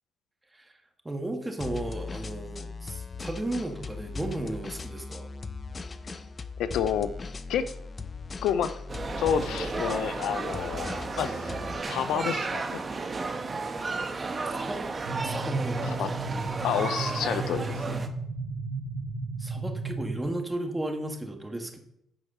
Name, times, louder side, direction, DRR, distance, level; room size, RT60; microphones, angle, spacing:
voice 1, 1.0-5.3 14.5-14.8 15.2-15.8 19.4-21.8, right 1 dB, 15° right, 4 dB, 1.7 m, -34 dB
sound 1, 1.6-11.8, left 4 dB, 35° left, 0.6 m, -39 dB
voice 2, 6.6-7.1 7.5-7.7 8.4-8.7 9.2-11.5 11.9-12.8 16.0-16.1 16.6-18.0, left 8 dB, 85° left, 12 dB, 0.6 m, -29 dB
sound 2, 8.9-18.1, right 3 dB, 35° right, 1.1 m, -33 dB
sound 3, 15.0-20.2, right 3 dB, 85° right, 1.0 m, -34 dB
10.5 x 4.7 x 6.7 m, 0.75 s
cardioid pair, 90°, 0 cm